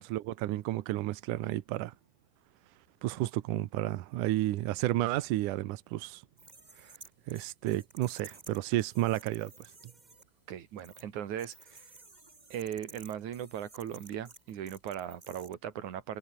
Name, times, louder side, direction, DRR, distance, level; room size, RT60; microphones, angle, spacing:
voice 1, 0.0-1.9 3.0-6.2 6.8-6.9 7.3-9.9, right 16 dB, 85° right, 1.8 m, -32 dB
sound 1, 6.4-10.2 10.8-11.0 11.4-15.5, right 3 dB, 30° right, 0.7 m, -54 dB
voice 2, 10.5-11.9 12.5-16.2, right 10 dB, 55° right, 3.0 m, -38 dB
omnidirectional pair, 4.9 m